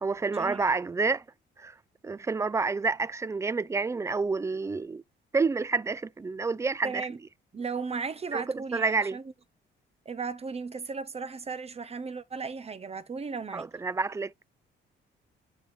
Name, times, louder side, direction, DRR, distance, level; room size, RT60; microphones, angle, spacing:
voice 1, 0.0-1.2 1.6-1.7 2.0-5.0 5.3-7.1 8.3-8.4 8.7-9.2 13.5-14.4, right 4 dB, 15° right, 0.4 m, -29 dB
voice 2, 6.8-7.2 7.5-9.3 10.0-13.7, right 5 dB, 30° right, 0.9 m, -36 dB
9.4 x 3.3 x 4.1 m
cardioid pair, 90°, 20 cm